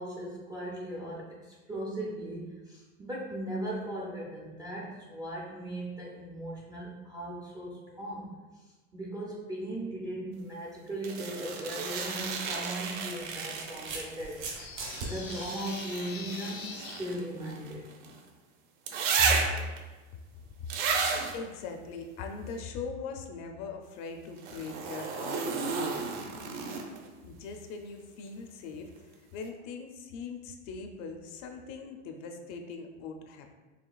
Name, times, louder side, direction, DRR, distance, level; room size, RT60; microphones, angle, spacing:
voice 1, 0.0-8.3 8.9-14.4 15.1-17.9 19.2-19.7, right 1 dB, 10° right, -5 dB, 0.3 m, -37 dB
sound 1, 11.0-14.3 15.0-18.2 18.9-19.8 20.7-21.4 24.4-27.1 29.0-29.1, right 5 dB, 60° right, 0.8 m, -33 dB
sound 2, 11.9-12.1 13.2-15.1, right 4 dB, 85° right, 1.4 m, -39 dB
sound 3, 14.6-17.0, left 5 dB, 80° left, 1.0 m, -43 dB
voice 2, 21.3-26.3 27.2-33.5, left 4 dB, 45° left, 5 dB, 0.5 m, -41 dB
4.9 x 3.2 x 2.3 m, 1.2 s
supercardioid pair, 130°, 39 cm